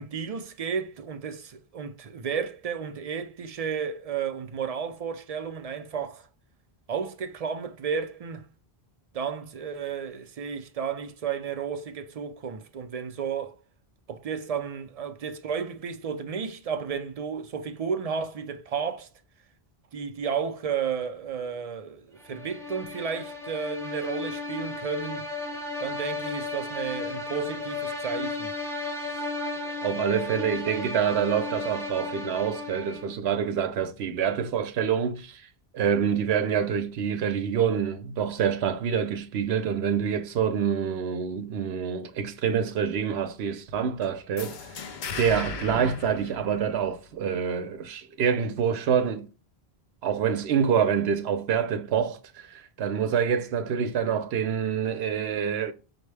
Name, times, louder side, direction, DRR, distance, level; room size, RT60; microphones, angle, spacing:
voice 1, 0.0-6.3 6.9-8.4 9.1-13.6 14.1-19.1 19.9-25.3 25.8-28.5, right 6 dB, 50° right, 0.5 m, -32 dB
sound 1, 22.2-33.2, left 3 dB, 5° left, 0.6 m, -34 dB
voice 2, 29.8-35.5 35.7-49.3 50.0-55.7, right 7 dB, 90° right, 0.9 m, -26 dB
sound 2, 44.4-47.1, left 4 dB, 55° left, 0.6 m, -37 dB
5.8 x 2.1 x 3.2 m
omnidirectional pair, 1.0 m